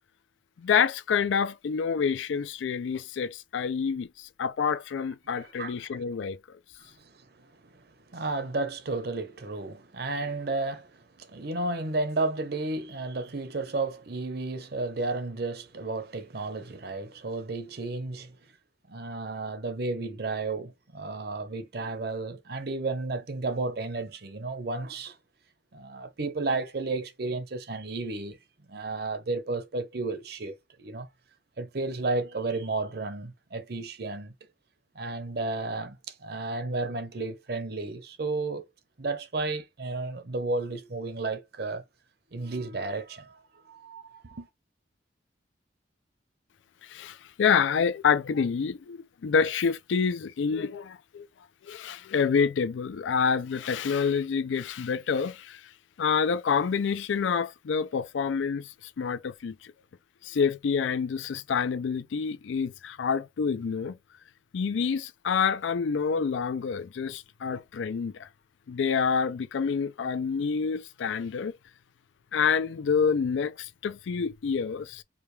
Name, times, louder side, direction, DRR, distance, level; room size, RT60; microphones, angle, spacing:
voice 1, 0.6-6.4 46.8-51.3 51.7-55.6 56.0-59.7 60.2-64.0 64.5-68.3 68.7-71.5 72.3-75.0, left 6 dB, 80° left, 0.4 m, -27 dB
voice 2, 5.3-5.9 6.8-18.3 18.9-25.2 25.7-28.4 28.7-31.1 31.6-34.3 34.9-38.6 39.0-41.8 42.3-44.5, right 3 dB, 55° right, 0.7 m, -33 dB
4.9 x 2.3 x 3.2 m
head